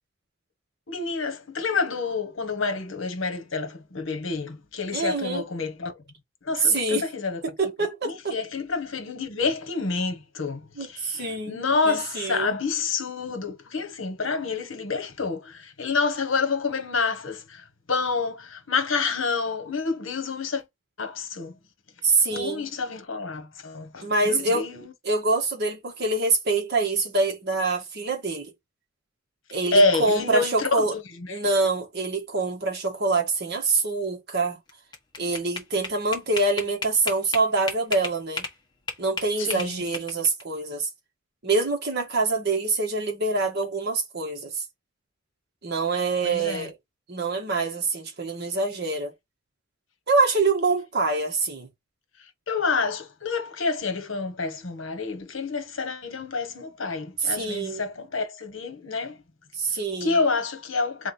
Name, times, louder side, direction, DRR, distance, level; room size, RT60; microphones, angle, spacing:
voice 1, 0.9-5.9 6.4-7.4 8.0-20.6 21.0-21.5 22.3-24.9 29.7-31.5 39.4-39.8 46.2-46.7 52.2-59.2 60.0-61.1, left 4 dB, 70° left, 1.2 m, -28 dB
voice 2, 4.9-5.4 6.6-7.1 7.6-8.4 10.8-12.5 22.0-22.7 24.0-24.6 25.0-28.5 29.5-30.9 31.3-34.6 35.2-38.4 39.0-40.9 41.4-44.6 45.6-46.7 47.1-49.1 50.1-51.7 57.2-57.8 59.5-60.2, right 3 dB, 55° right, 1.5 m, -25 dB
sound 1, 34.7-38.6 38.9-40.4, left 4 dB, 20° left, 1.2 m, -33 dB
3.7 x 3.3 x 4.0 m
head